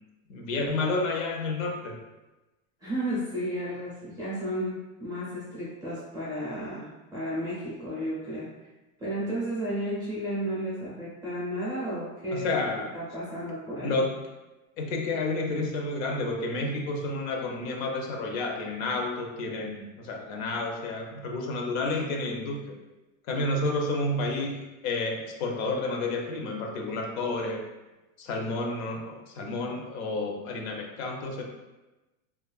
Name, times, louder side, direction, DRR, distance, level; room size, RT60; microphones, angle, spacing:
voice 1, 0.3-2.0 12.3-12.9 13.8-14.2 14.8-22.6 23.3-24.6 24.8-27.6 28.2-31.4, left 2 dB, 75° left, 1 dB, 0.6 m, -30 dB
voice 2, 2.8-8.5 9.0-12.7 12.9-14.0, equal, 10° right, -9 dB, 0.4 m, -33 dB
2.7 x 2.3 x 2.3 m, 1.1 s
supercardioid pair, 155°, 41 cm